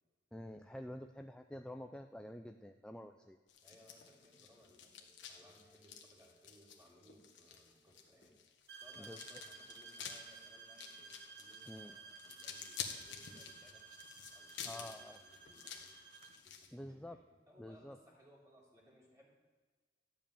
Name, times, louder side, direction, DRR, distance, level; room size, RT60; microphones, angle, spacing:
voice 1, 0.3-3.4 9.0-9.2 11.7-12.0 14.7-15.2 16.7-17.2 17.6-18.0, left 1 dB, 5° left, 5 dB, 0.4 m, -48 dB
sound 1, 3.5-16.7, left 7 dB, 75° left, 1.4 m, -50 dB
voice 2, 3.6-8.4 8.7-13.8 14.3-15.9 16.4-19.3, equal, 15° right, -4 dB, 3.3 m, -64 dB
sound 2, 8.7-16.4, right 5 dB, 60° right, 1.6 m, -55 dB
12.5 x 5.4 x 8.8 m, 1.4 s
head